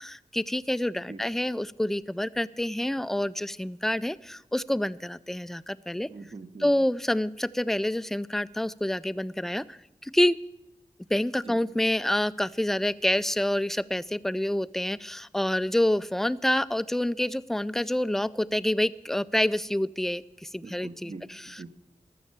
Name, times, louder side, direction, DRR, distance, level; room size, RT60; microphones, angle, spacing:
voice 1, 0.0-6.1 6.6-10.4 11.1-21.1, left 1 dB, 5° left, 17 dB, 0.3 m, -27 dB
voice 2, 6.1-6.7 11.4-11.6 20.6-21.7, right 3 dB, 50° right, 11 dB, 0.9 m, -43 dB
14.0 x 6.4 x 8.6 m, 0.93 s
wide cardioid pair, 70°, 13 cm